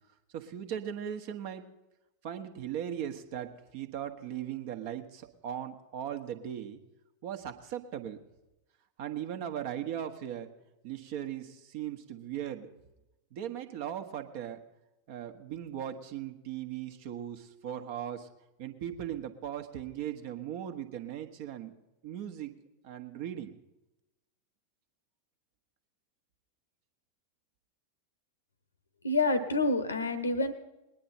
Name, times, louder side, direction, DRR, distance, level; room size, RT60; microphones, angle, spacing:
voice 1, 0.3-1.7 2.2-6.8 7.2-8.2 9.0-10.5 10.8-12.7 13.3-14.6 15.1-18.3 18.6-21.8 22.0-22.5 22.8-23.6, right 10 dB, 50° right, 7 dB, 1.1 m, -38 dB
voice 2, 29.0-30.5, left 2 dB, 75° left, 14 dB, 1.0 m, -27 dB
20.5 x 9.9 x 4.4 m, 0.98 s
figure-of-eight pair, 90°, 0 cm